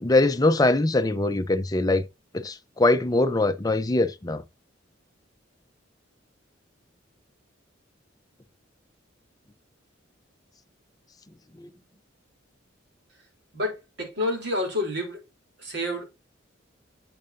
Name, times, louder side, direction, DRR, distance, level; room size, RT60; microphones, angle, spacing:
voice 1, 0.0-2.0 2.3-4.4 11.6-11.7, left 2 dB, 20° left, 0.6 m, -22 dB
voice 2, 13.5-15.2 15.6-16.0, left 1 dB, 60° right, 3.4 m, -29 dB
8.8 x 7.8 x 2.6 m
head